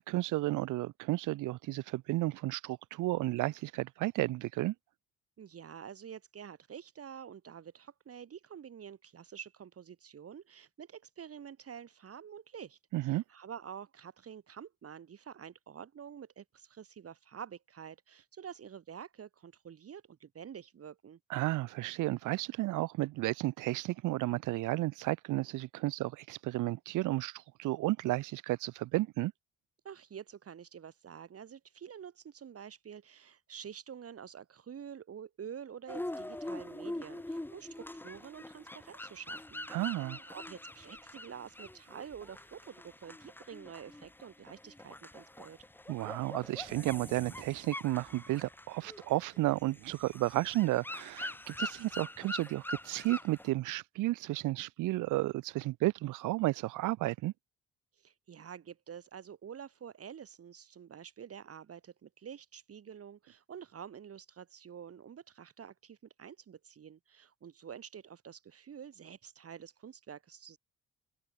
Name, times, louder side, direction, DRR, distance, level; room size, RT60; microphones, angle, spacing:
voice 1, 0.0-4.7 12.9-13.2 21.3-29.3 39.7-40.2 45.9-57.3, right 18 dB, 90° right, 0.8 m, -33 dB
voice 2, 5.4-21.2 29.8-45.6 58.0-70.6, right 8 dB, 50° right, 2.5 m, -48 dB
sound 1, 35.9-53.5, left 1 dB, 5° left, 0.9 m, -44 dB
cardioid pair, 90°, 30 cm